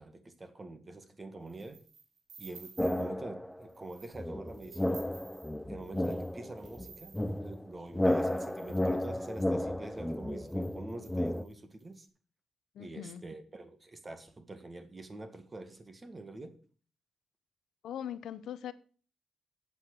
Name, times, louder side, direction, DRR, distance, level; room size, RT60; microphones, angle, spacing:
voice 1, 0.0-1.8 2.4-5.0 5.7-7.1 7.4-12.1 12.8-16.6, right 2 dB, 25° right, 8 dB, 1.7 m, -45 dB
sound 1, 1.5-3.2 3.6-4.2 4.5-9.5 10.1-10.2 10.4-11.9, right 5 dB, 85° right, 3.9 m, -55 dB
sound 2, 2.8-3.6 4.1-11.4, left 1 dB, 5° left, 0.5 m, -33 dB
voice 2, 12.7-13.2 17.8-18.7, left 10 dB, 90° left, 14 dB, 0.8 m, -40 dB
8.6 x 7.8 x 7.7 m, 0.41 s
cardioid pair, 135°, 0 cm